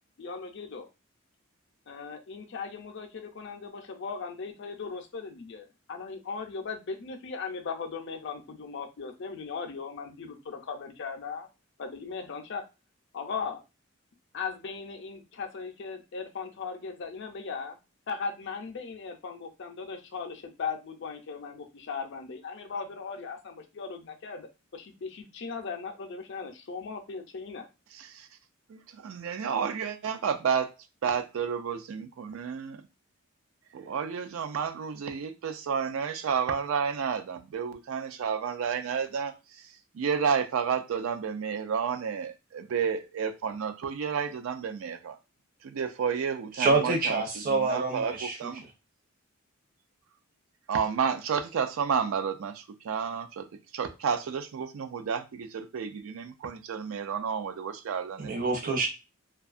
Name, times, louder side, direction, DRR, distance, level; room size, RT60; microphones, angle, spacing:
voice 1, 0.2-0.9 1.9-11.5 11.8-12.6 13.1-13.6 14.3-17.8 18.1-27.7, left 5 dB, 55° left, 0.5 m, -38 dB
voice 2, 28.7-30.7 31.0-32.8 33.7-39.3 40.0-45.2 45.6-47.1 47.5-48.1 48.4-48.6 50.7-52.5 52.9-53.4 53.7-58.4 58.6-58.8, right 6 dB, 70° right, 0.4 m, -31 dB
voice 3, 46.5-48.5 58.2-58.9, right 3 dB, 40° right, 0.7 m, -27 dB
2.6 x 2.3 x 2.4 m
head